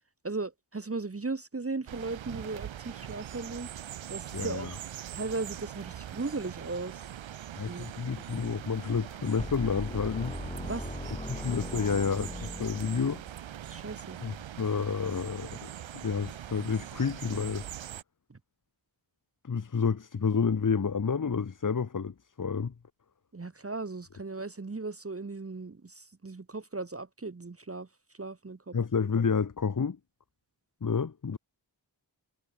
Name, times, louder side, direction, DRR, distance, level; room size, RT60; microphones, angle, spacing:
voice 1, 0.2-3.7 4.1-4.7 5.1-7.1 7.6-7.9 10.7-10.9 13.7-14.2 18.3-18.4 23.3-27.9 28.1-28.8, right 3 dB, 30° right, 0.9 m, -37 dB
sound 1, 1.9-18.0, right 11 dB, 75° right, 0.5 m, -42 dB
voice 2, 4.3-4.7 7.6-10.4 11.3-13.2 14.2-15.7 15.9-17.6 19.4-22.7 28.7-30.0 30.8-31.4, left 5 dB, 45° left, 0.8 m, -30 dB
sound 2, 9.4-13.4, left 1 dB, 15° left, 1.8 m, -39 dB
wide cardioid pair, 55°, 46 cm